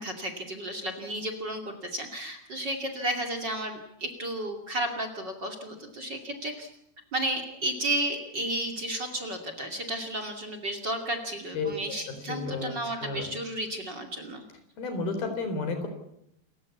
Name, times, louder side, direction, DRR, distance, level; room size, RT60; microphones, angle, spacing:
voice 1, 0.0-6.7 7.1-14.4, right 1 dB, 35° right, 4 dB, 2.7 m, -33 dB
voice 2, 12.1-12.7 13.0-13.3 14.8-15.9, left 4 dB, 80° left, 8 dB, 5.7 m, -32 dB
28.5 x 15.5 x 8.5 m, 0.78 s
omnidirectional pair, 4.2 m